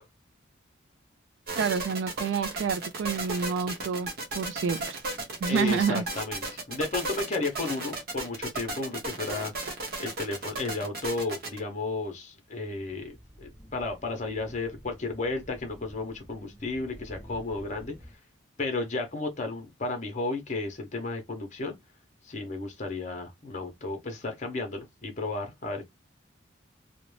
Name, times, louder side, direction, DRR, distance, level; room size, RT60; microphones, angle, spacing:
sound 1, 1.5-11.6, right 2 dB, 50° right, 0.8 m, -34 dB
voice 1, 1.6-4.1 4.3-5.0 5.4-6.0, right 6 dB, 65° right, 0.3 m, -28 dB
voice 2, 5.5-9.5 10.0-17.9 18.6-21.8 22.2-25.8, left 3 dB, 35° left, 0.7 m, -33 dB
sound 2, 12.9-18.1, equal, 5° right, 0.8 m, -49 dB
2.5 x 2.1 x 3.1 m
head